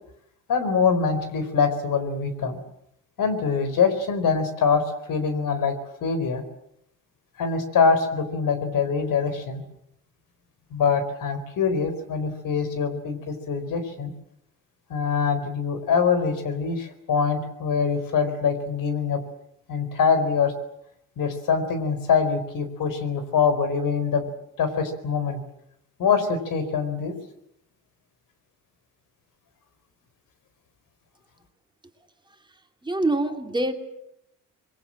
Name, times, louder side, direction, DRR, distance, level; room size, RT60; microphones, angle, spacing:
voice 1, 0.5-2.6 3.2-6.4 7.4-9.6 10.7-14.1 14.9-19.2 19.7-20.5 21.2-24.3 24.6-25.4 26.0-27.1, left 5 dB, 90° left, 10 dB, 4.4 m, -24 dB
voice 2, 32.8-33.7, right 2 dB, 15° right, 5 dB, 2.6 m, -24 dB
26.5 x 22.5 x 7.7 m, 0.77 s
wide cardioid pair, 135°, 31 cm